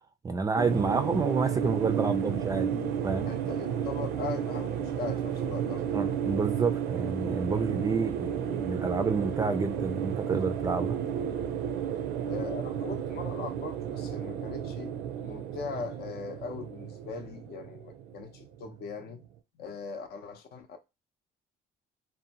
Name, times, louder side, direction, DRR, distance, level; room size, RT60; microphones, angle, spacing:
voice 1, 0.2-3.3 5.9-11.0, right 4 dB, 20° right, 0.3 m, -29 dB
sound 1, 0.6-19.0, right 9 dB, 85° right, 0.5 m, -32 dB
voice 2, 3.3-6.2 8.5-8.6 12.2-14.9 15.2-19.2 19.5-20.8, left 5 dB, 70° left, 0.6 m, -40 dB
2.7 x 2.1 x 2.8 m
cardioid pair, 110°, 17 cm